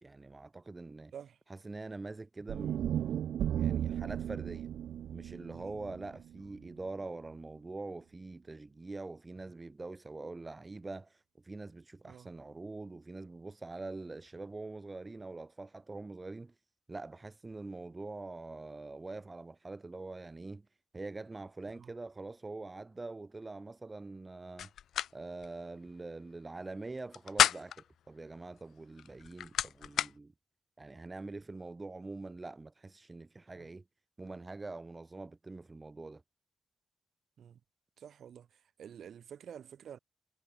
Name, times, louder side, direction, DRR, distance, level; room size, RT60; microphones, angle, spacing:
voice 1, 0.0-1.1 1.5-2.9 3.6-4.7 5.1-16.5 16.9-20.7 20.9-24.7 25.1-30.3 30.8-33.8 34.2-36.2, right 3 dB, 15° right, 1.9 m, -44 dB
sound 1, 2.5-6.7, right 10 dB, 80° right, 1.0 m, -35 dB
sound 2, 24.6-25.1 25.4-25.5 27.0-27.9 29.0-30.1, left 10 dB, 80° left, 0.5 m, -30 dB
voice 2, 38.0-38.5 38.8-40.0, right 8 dB, 60° right, 5.7 m, -49 dB
wide cardioid pair, 170°, 0 cm